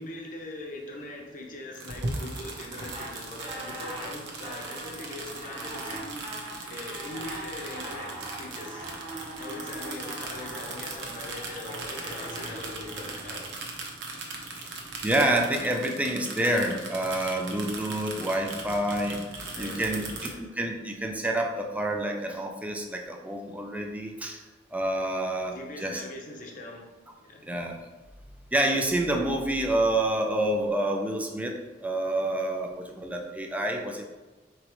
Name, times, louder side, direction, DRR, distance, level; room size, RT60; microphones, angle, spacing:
voice 1, 0.0-6.3 6.7-8.9 9.4-13.4 19.5-20.4 25.5-27.4, left 2 dB, 50° left, 0 dB, 0.7 m, -41 dB
sound 1, 1.7-20.3, right 3 dB, 80° right, 0.8 m, -39 dB
sound 2, 2.9-13.5, right 1 dB, 30° right, 0.9 m, -41 dB
voice 2, 15.0-19.2 19.6-20.3 20.6-24.4 24.7-26.0 27.4-27.8 28.5-34.1, right 1 dB, 10° right, 2 dB, 0.4 m, -28 dB
4.8 x 3.0 x 3.0 m, 1.2 s
head